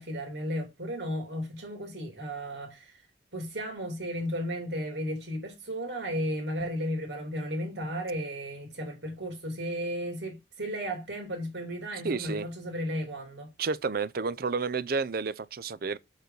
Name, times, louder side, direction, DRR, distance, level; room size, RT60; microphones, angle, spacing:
voice 1, 0.0-3.0 3.3-13.5, equal, 80° right, 3.0 m, -34 dB
voice 2, 12.0-12.5 13.6-16.0, right 4 dB, 55° right, 0.5 m, -30 dB
7.0 x 6.7 x 4.0 m
head